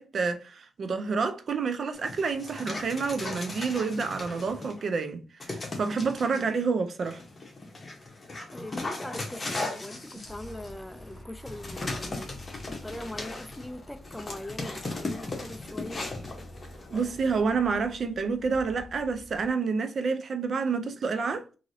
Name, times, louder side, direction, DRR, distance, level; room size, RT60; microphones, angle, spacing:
voice 1, 0.0-7.2 16.9-21.5, right 5 dB, 50° right, 0.5 m, -29 dB
Dog, 1.9-4.8 5.4-6.4 7.0-17.4, left 2 dB, 30° left, 1.0 m, -38 dB
voice 2, 8.5-12.3 12.7-16.1, left 1 dB, 5° left, 0.4 m, -41 dB
sound 1, 10.2-19.5, equal, 15° right, 1.5 m, -48 dB
2.9 x 2.7 x 2.7 m
cardioid pair, 100°, 0 cm